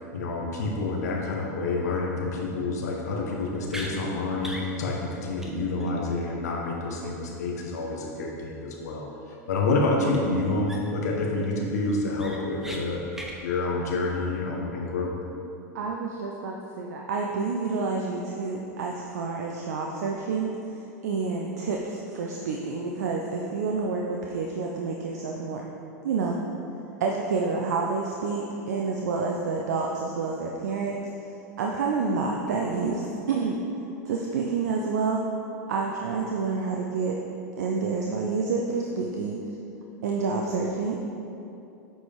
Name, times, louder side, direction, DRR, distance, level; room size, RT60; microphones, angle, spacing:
voice 1, 0.1-13.0 13.4-15.1, left 2 dB, 75° left, -1 dB, 1.4 m, -28 dB
sound 1, 3.7-3.9 4.4-4.7 5.0-5.1 5.4-5.5 5.8-5.9 10.1-10.2 10.7-11.0 11.4-11.5 11.9-12.8 13.1-13.4, equal, 5° right, 1.0 m, -38 dB
voice 2, 15.7-25.6 26.0-26.4 27.0-31.0 31.6-33.6 34.0-35.2 35.7-37.2 37.6-39.4 40.0-41.0, right 4 dB, 75° right, -1 dB, 0.7 m, -28 dB
8.0 x 4.8 x 4.4 m, 2.8 s
hypercardioid pair, 100°, 9 cm